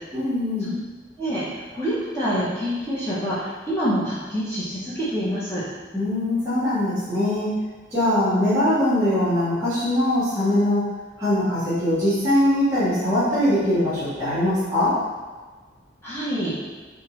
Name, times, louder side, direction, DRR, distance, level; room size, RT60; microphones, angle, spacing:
voice 1, 0.1-0.7 5.9-7.5 7.9-10.8 11.2-14.9, left 1 dB, 15° right, -12 dB, 1.3 m, -21 dB
voice 2, 1.7-5.6 16.0-16.5, equal, 15° left, -10 dB, 0.8 m, -26 dB
4.4 x 2.4 x 3.0 m, 1.4 s
head